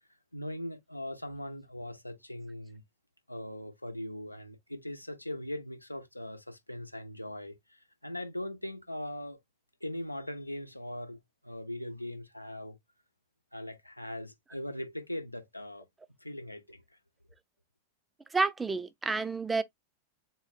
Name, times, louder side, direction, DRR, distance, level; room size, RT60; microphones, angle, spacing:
voice 1, 0.3-2.8 3.3-9.4 9.8-12.8 13.5-15.9 16.2-16.8, left 1 dB, 85° left, 0.8 m, -40 dB
voice 2, 18.3-19.6, right 3 dB, 10° right, 0.5 m, -29 dB
4.0 x 2.2 x 4.0 m
figure-of-eight pair, 90°, 0 cm